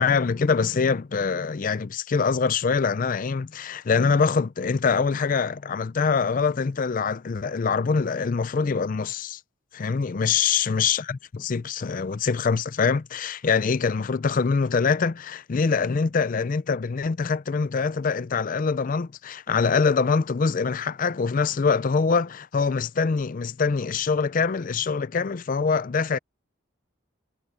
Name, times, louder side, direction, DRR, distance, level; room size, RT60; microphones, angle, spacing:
voice 1, 0.0-9.4 9.7-26.2, left 5 dB, 40° left, 0.4 m, -24 dB
head